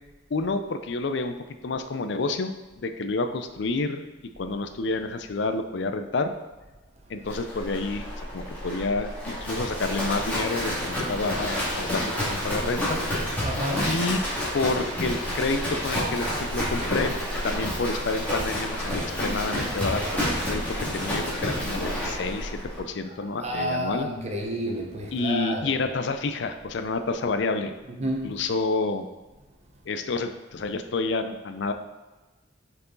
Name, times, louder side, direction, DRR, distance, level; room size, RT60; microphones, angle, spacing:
voice 1, 0.3-1.3 1.6-2.5 2.8-4.0 4.4-6.4 7.1-13.0 13.8-14.2 14.5-17.2 17.4-24.1 25.1-27.7 28.0-29.1 29.9-31.7, left 3 dB, 65° left, 0.5 m, -29 dB
Livestock farm animals working animals, 7.3-22.8, equal, 10° left, 2.2 m, -29 dB
voice 2, 13.4-13.9 23.4-25.7 28.0-28.4, equal, 35° right, 1.0 m, -30 dB
6.8 x 4.6 x 3.9 m
head